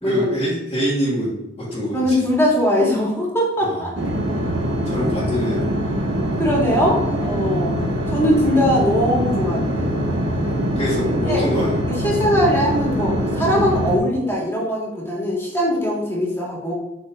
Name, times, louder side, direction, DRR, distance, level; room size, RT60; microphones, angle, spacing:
voice 1, 0.0-2.2 3.6-3.9 4.8-5.7 10.8-11.8, equal, 30° left, -9 dB, 2.1 m, -24 dB
voice 2, 1.9-3.9 6.4-7.7 8.1-9.9 10.4-10.6 11.3-11.4 12.0-16.7, equal, 15° left, -4 dB, 2.5 m, -21 dB
sound 1, 4.0-14.0, equal, 80° right, 1.4 m, -23 dB
7.5 x 6.3 x 3.9 m, 0.93 s
head